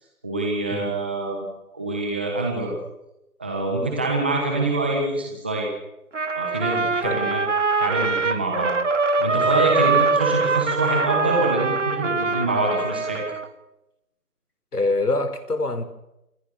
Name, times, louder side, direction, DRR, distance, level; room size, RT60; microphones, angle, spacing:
voice 1, 0.2-1.5 1.7-2.7 3.4-5.7 6.3-7.4 7.8-8.7 9.2-13.2, right 2 dB, 5° right, 0 dB, 1.3 m, -25 dB
Trumpet, 6.1-13.5, right 4 dB, 50° right, 2.1 m, -23 dB
voice 2, 14.7-15.8, left 2 dB, 80° left, 10 dB, 4.6 m, -25 dB
28.0 x 21.5 x 6.6 m, 0.89 s
figure-of-eight pair, 175°, 46 cm